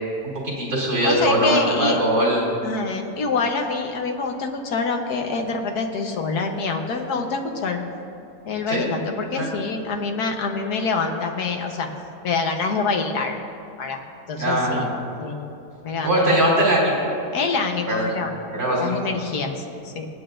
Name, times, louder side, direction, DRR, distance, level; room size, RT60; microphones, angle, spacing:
voice 1, 0.2-2.4 8.7-8.9 9.4-9.5 14.4-14.8 16.0-17.1 17.9-18.1 18.5-19.0, right 1 dB, 65° right, -5 dB, 3.4 m, -21 dB
voice 2, 1.0-2.0 2.6-7.8 8.5-11.9 12.2-13.4 13.8-14.0 14.3-14.9 15.2-15.5 15.8-16.4 17.3-20.1, left 4 dB, 75° left, 3 dB, 1.6 m, -26 dB
26.0 x 8.8 x 2.6 m, 2.6 s
omnidirectional pair, 1.7 m